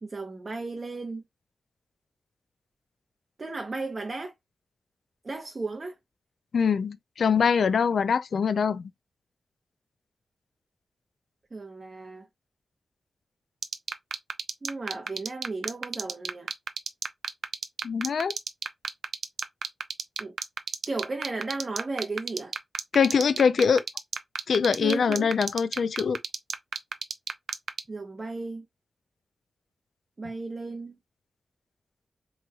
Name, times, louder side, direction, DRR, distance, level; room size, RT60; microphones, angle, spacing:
voice 1, 0.0-1.2 3.4-4.3 5.2-5.9 11.5-12.3 14.6-16.5 20.2-20.4 20.9-22.5 24.8-25.3 27.9-28.7 30.2-31.0, right 3 dB, 40° right, 0.7 m, -34 dB
voice 2, 6.5-8.9 17.8-18.4 22.9-23.8 24.5-26.2, left 6 dB, 75° left, 0.3 m, -23 dB
sound 1, 13.6-27.8, right 6 dB, 85° right, 0.4 m, -30 dB
3.0 x 2.3 x 4.0 m
wide cardioid pair, 95°, 0 cm